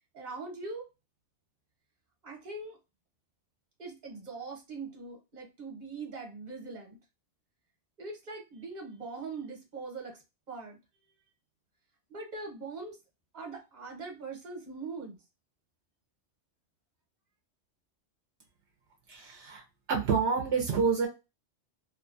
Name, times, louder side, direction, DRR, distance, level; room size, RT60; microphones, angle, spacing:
voice 1, 0.1-0.9 2.2-2.8 3.8-7.0 8.0-10.2 10.5-10.8 12.1-13.0 13.3-15.2, right 3 dB, 40° right, 1 dB, 1.1 m, -41 dB
voice 2, 19.1-19.6 19.9-21.1, right 5 dB, 75° right, 2 dB, 0.9 m, -28 dB
2.8 x 2.3 x 2.5 m, 0.25 s
omnidirectional pair, 1.2 m